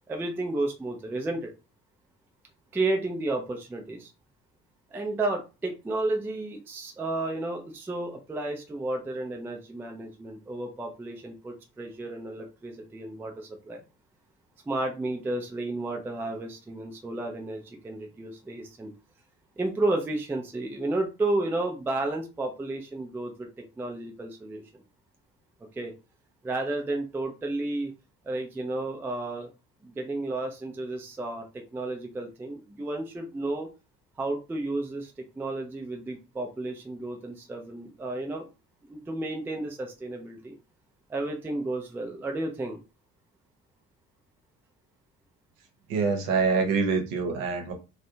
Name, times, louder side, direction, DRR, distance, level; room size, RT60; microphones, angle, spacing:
voice 1, 0.1-1.5 2.7-4.1 4.9-13.8 14.6-18.9 19.6-23.5 23.8-24.8 25.7-25.9 26.4-27.9 28.2-29.5 29.8-33.7 34.2-38.5 38.8-40.6 41.1-42.8, right 2 dB, 5° right, 3 dB, 0.4 m, -32 dB
voice 2, 45.9-47.7, right 5 dB, 65° right, 4 dB, 0.9 m, -25 dB
2.5 x 2.2 x 2.6 m, 0.29 s
figure-of-eight pair, 45°, 47 cm